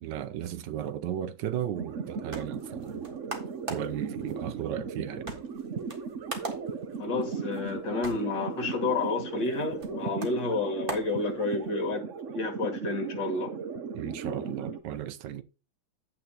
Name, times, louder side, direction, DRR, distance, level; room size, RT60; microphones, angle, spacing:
voice 1, 0.0-3.1 3.7-5.3 13.9-15.4, right 10 dB, 70° right, 1.3 m, -35 dB
sound 1, 1.7-14.8, right 5 dB, 55° right, 0.9 m, -37 dB
sound 2, 1.9-11.9, right 2 dB, 30° right, 1.6 m, -44 dB
voice 2, 7.0-12.1 12.3-13.5, left 3 dB, 65° left, 2.8 m, -30 dB
10.0 x 8.8 x 2.9 m
omnidirectional pair, 2.2 m